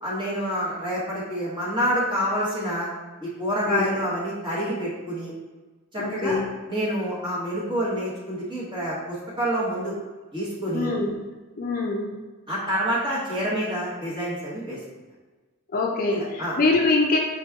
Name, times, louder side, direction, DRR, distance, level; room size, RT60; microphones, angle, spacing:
voice 1, 0.0-2.9 3.4-5.3 5.9-6.4 6.7-9.9 10.3-10.9 12.5-14.8 16.1-16.6, equal, 25° right, -7 dB, 1.4 m, -27 dB
voice 2, 3.7-4.0 6.0-6.5 10.7-11.1 11.6-12.1 15.7-17.2, left 3 dB, 40° left, 0 dB, 0.4 m, -24 dB
5.0 x 3.1 x 2.3 m, 1.3 s
head